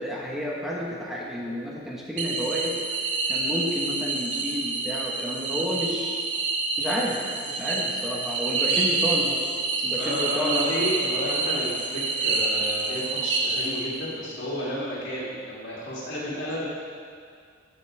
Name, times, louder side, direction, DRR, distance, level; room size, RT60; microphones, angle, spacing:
voice 1, 0.0-2.8 3.3-6.2 6.8-7.2 7.5-9.4 9.8-10.7, equal, ahead, -4 dB, 1.1 m, -30 dB
sound 1, 2.2-14.1, right 3 dB, 75° right, 0.9 m, -27 dB
voice 2, 9.9-16.6, equal, 75° left, -6 dB, 2.4 m, -31 dB
14.5 x 5.9 x 3.4 m, 2.1 s
head